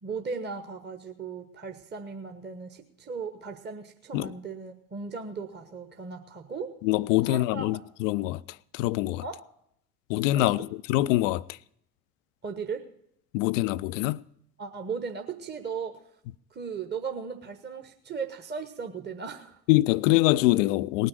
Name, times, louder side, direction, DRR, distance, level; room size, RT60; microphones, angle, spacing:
voice 1, 0.0-6.7 7.2-7.8 9.2-9.4 10.3-10.5 12.4-12.9 14.6-16.0 16.5-19.6, right 5 dB, 20° right, 1.2 m, -37 dB
voice 2, 6.8-9.2 10.1-11.6 13.3-14.2 19.7-21.1, left 17 dB, 60° left, 0.5 m, -24 dB
18.5 x 6.4 x 8.9 m
figure-of-eight pair, 60°, 45 cm